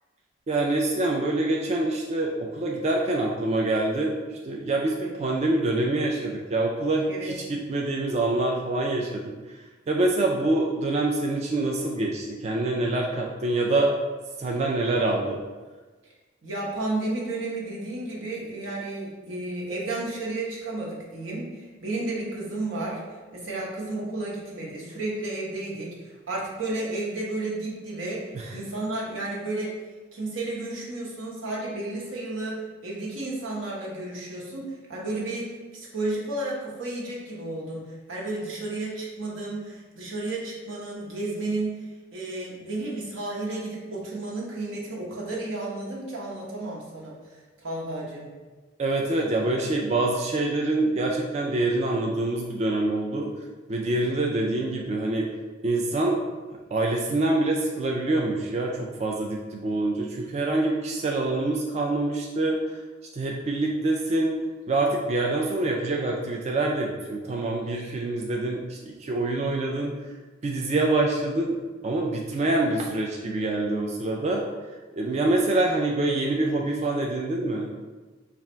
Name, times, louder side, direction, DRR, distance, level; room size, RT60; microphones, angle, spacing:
voice 1, 0.5-9.3 9.9-13.9 14.4-15.4 28.3-28.5 48.8-53.3 53.7-55.3 55.6-56.2 56.7-62.8 63.1-64.4 64.7-70.0 70.4-74.4 74.9-77.7, right 2 dB, 35° right, -1 dB, 0.3 m, -25 dB
voice 2, 16.4-32.6 32.8-48.3, right 2 dB, 85° right, -5 dB, 1.1 m, -32 dB
3.4 x 2.4 x 4.3 m, 1.3 s
head